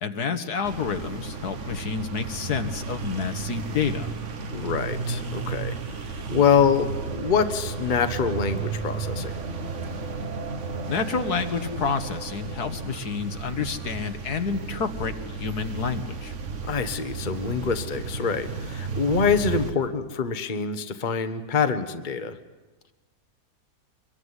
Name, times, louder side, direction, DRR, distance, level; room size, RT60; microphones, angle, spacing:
voice 1, 0.0-4.1 10.9-16.3, left 5 dB, 75° left, 8 dB, 2.0 m, -29 dB
sound 1, 0.6-19.7, right 4 dB, 50° right, 1.6 m, -33 dB
voice 2, 4.5-5.8 6.3-9.4 16.7-22.4, left 6 dB, 30° left, 10 dB, 1.2 m, -25 dB
24.5 x 22.0 x 9.8 m, 1.2 s
omnidirectional pair, 1.7 m